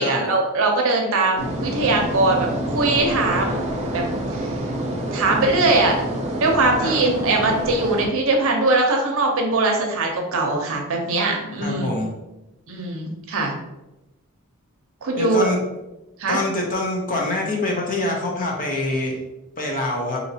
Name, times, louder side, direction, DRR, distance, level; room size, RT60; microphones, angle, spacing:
voice 1, 0.0-3.6 3.9-4.0 4.3-4.5 5.1-6.0 6.4-11.9 12.7-13.5 15.0-15.5 16.2-16.4, right 2 dB, 65° right, 1 dB, 0.7 m, -21 dB
sound 1, 1.4-8.1, right 1 dB, 30° right, 0.7 m, -27 dB
voice 2, 11.6-12.1 15.2-15.6 16.3-19.2 19.6-20.2, left 2 dB, 40° left, -1 dB, 0.8 m, -25 dB
3.9 x 2.8 x 2.8 m, 0.98 s
head